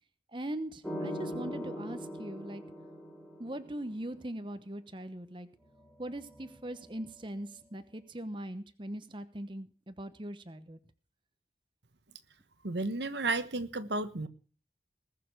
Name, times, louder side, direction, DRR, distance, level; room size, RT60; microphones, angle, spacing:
voice 1, 0.3-2.6 3.4-5.5 6.0-10.8, right 1 dB, 25° right, 11 dB, 1.0 m, -40 dB
sound 1, 0.8-3.9 5.6-7.3, equal, 5° left, 2.8 m, -41 dB
voice 2, 12.6-14.3, right 3 dB, 80° right, 12 dB, 1.2 m, -32 dB
20.0 x 6.8 x 6.4 m, 0.41 s
head